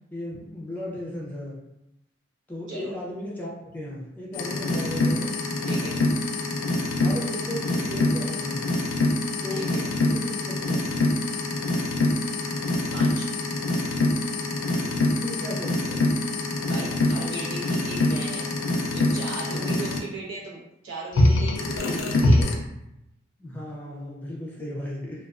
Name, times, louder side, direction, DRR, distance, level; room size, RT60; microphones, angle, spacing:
voice 1, 0.1-1.6 2.5-5.3 7.0-8.6 9.4-10.9 15.2-16.2 19.5-19.7 23.4-25.2, left 1 dB, 10° left, -5 dB, 0.4 m, -36 dB
sound 1, 4.3-20.0 21.1-22.5, left 2 dB, 85° left, 0.4 m, -25 dB
voice 2, 5.6-6.0 9.5-9.8 12.9-13.3 16.6-18.5 18.9-22.5, right 2 dB, 90° right, -5 dB, 0.8 m, -37 dB
2.3 x 2.3 x 2.3 m, 0.88 s
head